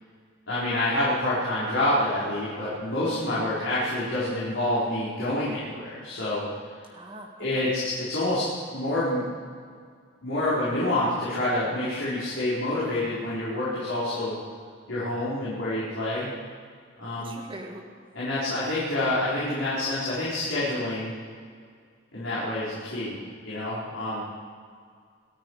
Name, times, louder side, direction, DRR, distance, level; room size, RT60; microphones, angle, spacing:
voice 1, 0.5-6.5 7.4-9.2 10.2-14.4 14.9-16.3 17.0-17.3 18.1-21.1 22.1-23.2 23.4-24.2, left 1 dB, 70° left, -10 dB, 4.9 m, -27 dB
voice 2, 3.3-3.6 6.9-7.8 17.2-17.8, right 1 dB, 25° right, 1 dB, 1.5 m, -42 dB
22.0 x 13.0 x 4.9 m, 2.1 s
head